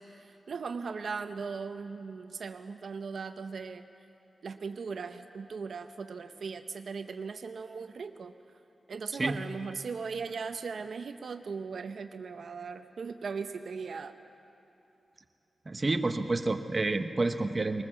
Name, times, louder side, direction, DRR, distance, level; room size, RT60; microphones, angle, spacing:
voice 1, 0.0-3.8 4.4-8.3 8.9-14.1, right 5 dB, 60° right, 8 dB, 0.7 m, -38 dB
voice 2, 15.7-17.8, right 2 dB, 25° right, 6 dB, 0.8 m, -29 dB
21.0 x 20.0 x 7.3 m, 2.8 s
wide cardioid pair, 170°, 0 cm